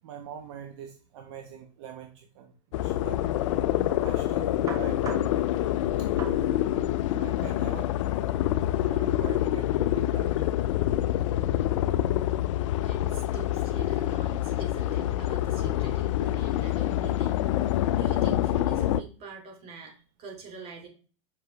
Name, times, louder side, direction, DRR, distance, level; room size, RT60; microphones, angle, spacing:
voice 1, 0.0-3.3 4.0-5.6 6.0-7.9 8.8-10.3 11.2-11.3, right 8 dB, 65° right, 4 dB, 1.3 m, -44 dB
sound 1, 2.7-19.0, left 13 dB, 75° left, 0.5 m, -26 dB
sound 2, 3.8-10.7, equal, 20° right, 1.6 m, -44 dB
voice 2, 12.8-20.9, right 4 dB, 40° right, 3 dB, 2.7 m, -44 dB
7.4 x 5.6 x 3.4 m, 0.37 s
supercardioid pair, 140°, 16 cm